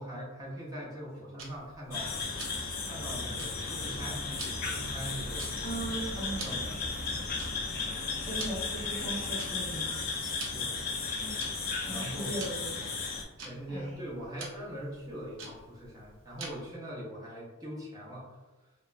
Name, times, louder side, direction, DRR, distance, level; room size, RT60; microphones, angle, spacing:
voice 1, 0.0-2.1 2.9-5.5 6.4-6.7 10.5-10.7 11.8-12.4 13.4-18.3, equal, 15° right, -6 dB, 0.7 m, -42 dB
Tick-tock, 1.4-16.8, right 3 dB, 65° right, 0.6 m, -49 dB
sound 1, 1.9-13.2, left 4 dB, 45° left, 0.4 m, -35 dB
sound 2, 3.0-10.2, equal, 35° right, 1.1 m, -47 dB
voice 2, 5.6-6.6 8.2-10.0 11.7-12.8 13.7-13.9, right 1 dB, 15° left, -9 dB, 1.2 m, -38 dB
3.3 x 2.1 x 2.5 m, 1.2 s
head